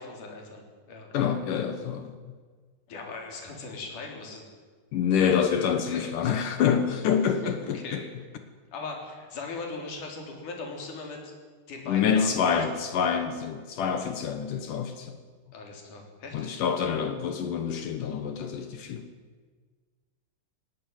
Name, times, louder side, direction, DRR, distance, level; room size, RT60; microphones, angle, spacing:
voice 1, 0.0-1.4 2.9-4.4 5.9-6.1 7.4-8.0 8.7-11.3 11.7-12.6 15.5-16.6, left 3 dB, 45° left, 2 dB, 4.9 m, -39 dB
voice 2, 1.1-2.3 4.9-8.0 11.9-15.2 16.3-19.0, left 7 dB, 70° left, 8 dB, 2.0 m, -27 dB
19.5 x 18.0 x 9.2 m, 1.5 s
omnidirectional pair, 5.5 m